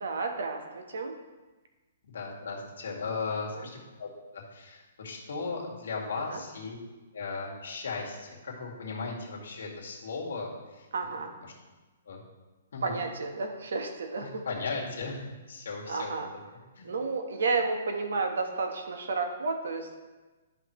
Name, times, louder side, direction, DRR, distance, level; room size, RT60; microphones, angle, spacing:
voice 1, 0.0-1.1 3.6-3.7 6.3-6.4 10.9-11.3 12.8-14.4 15.9-16.3 16.8-20.0, right 4 dB, 75° right, 4 dB, 1.2 m, -31 dB
voice 2, 2.0-6.8 7.1-10.9 11.4-11.5 12.1-12.2 12.7-13.0 14.2-16.2 16.8-16.9, left 4 dB, 70° left, -2 dB, 2.1 m, -37 dB
11.0 x 5.8 x 3.2 m, 1.2 s
hypercardioid pair, 175°, 0 cm